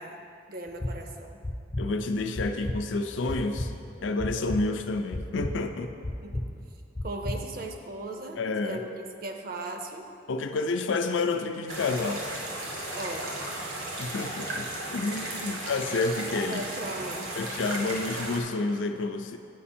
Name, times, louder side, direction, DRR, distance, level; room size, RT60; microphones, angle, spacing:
voice 1, 0.0-1.4 6.2-6.4 7.0-10.1 12.9-13.6 15.4-15.5 16.5-17.3, right 2 dB, 45° right, 4 dB, 0.5 m, -38 dB
sound 1, 0.7-0.9 1.4-1.8 2.3-2.8 3.3-3.7 4.2-4.6 5.1-5.5 6.0-6.4 6.9-7.4, left 1 dB, 20° left, 0.4 m, -31 dB
voice 2, 1.8-3.7 4.0-5.9 8.4-8.8 10.3-12.2 14.0-16.6 17.4-19.4, left 3 dB, 75° left, 7 dB, 0.5 m, -29 dB
sound 2, 11.7-18.4, right 1 dB, 80° right, 1.4 m, -35 dB
8.3 x 5.1 x 4.3 m, 2.5 s
head